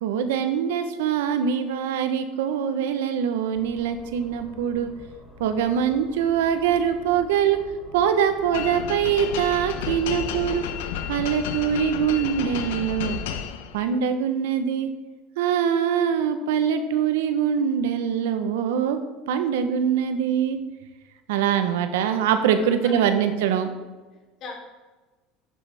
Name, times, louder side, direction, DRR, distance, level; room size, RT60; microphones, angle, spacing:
voice 1, 0.0-4.9 5.4-7.6 7.9-10.6 11.1-13.2 13.7-14.9 15.4-19.0 19.3-20.6 21.3-23.7, right 8 dB, 85° right, 9 dB, 0.9 m, -23 dB
sound 1, 3.5-11.3, right 1 dB, 10° right, 3.7 m, -47 dB
sound 2, 8.5-13.9, left 8 dB, 85° left, 0.8 m, -32 dB
voice 2, 22.6-23.1 24.1-24.5, left 4 dB, 50° left, -1 dB, 3.3 m, -41 dB
10.0 x 10.0 x 3.5 m, 1.2 s
supercardioid pair, 100°, 0 cm